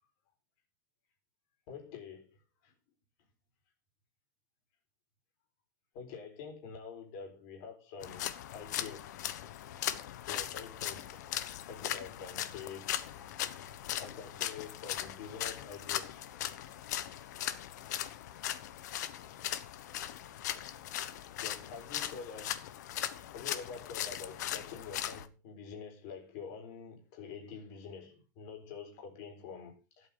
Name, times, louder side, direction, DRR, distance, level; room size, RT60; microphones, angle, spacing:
voice 1, 1.7-2.3 2.6-2.7 5.9-9.2 10.3-11.3 11.7-16.4 17.4-17.5 21.4-22.5 23.3-30.1, left 6 dB, 45° left, 4.4 m, -47 dB
sound 1, 8.0-25.3, left 11 dB, 65° left, 1.2 m, -39 dB
17.5 x 8.4 x 3.9 m
supercardioid pair, 165°, 10 cm